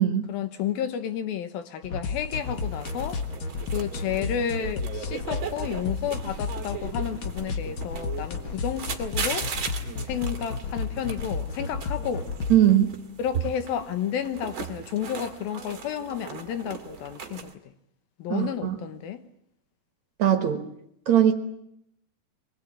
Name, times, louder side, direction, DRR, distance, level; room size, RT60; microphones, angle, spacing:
voice 1, 0.3-3.2 3.7-9.5 10.1-12.3 13.2-17.7 18.2-19.2, left 9 dB, 75° left, 3.0 m, -31 dB
sound 1, 1.8-12.7, left 4 dB, 45° left, 1.7 m, -32 dB
sound 2, 2.3-17.5, right 6 dB, 40° right, 2.3 m, -38 dB
voice 2, 12.5-13.0 18.3-18.7 20.2-20.6 21.1-21.3, right 11 dB, 55° right, 2.4 m, -20 dB
24.5 x 20.5 x 8.9 m
omnidirectional pair, 4.4 m